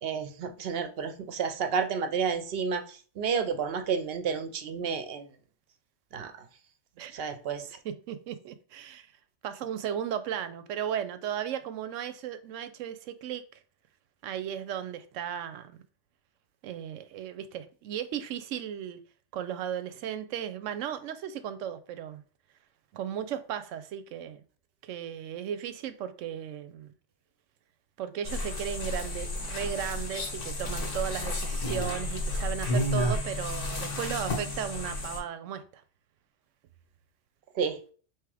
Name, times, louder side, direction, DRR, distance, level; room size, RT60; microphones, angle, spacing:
voice 1, 0.0-5.3 6.1-6.3 7.1-7.7 37.6-37.8, right 6 dB, 60° right, 0.8 m, -31 dB
voice 2, 7.8-9.1 9.4-13.4 14.2-15.8 16.6-19.0 19.3-22.2 22.9-24.4 24.8-26.9 28.0-35.8, right 9 dB, 90° right, 0.9 m, -35 dB
sound 1, 28.3-35.2, left 1 dB, 85° left, 1.7 m, -32 dB
3.4 x 3.1 x 4.8 m
omnidirectional pair, 1.2 m